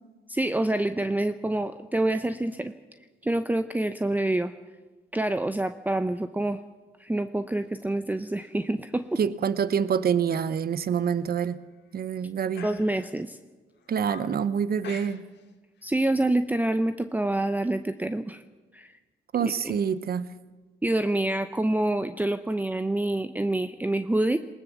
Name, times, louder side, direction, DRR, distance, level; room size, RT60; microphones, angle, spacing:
voice 1, 0.3-2.7 3.2-4.5 5.1-6.6 7.0-9.2 12.6-13.4 15.8-18.4 18.7-18.9 19.4-19.7 20.8-24.4, right 1 dB, 10° right, 10 dB, 0.7 m, -27 dB
sound 1, 8.1-8.5 8.9-9.2 9.7-9.9 10.3-10.5 10.8-10.9 11.6-12.0 12.5-13.3 13.7-14.4 14.8-15.5 15.8-16.0, left 7 dB, 60° left, 2.2 m, -47 dB
voice 2, 9.2-11.6 11.9-12.7 13.9-15.2 19.3-20.3, right 7 dB, 50° right, 16 dB, 0.9 m, -26 dB
20.0 x 18.5 x 7.3 m, 1.3 s
cardioid pair, 90°, 20 cm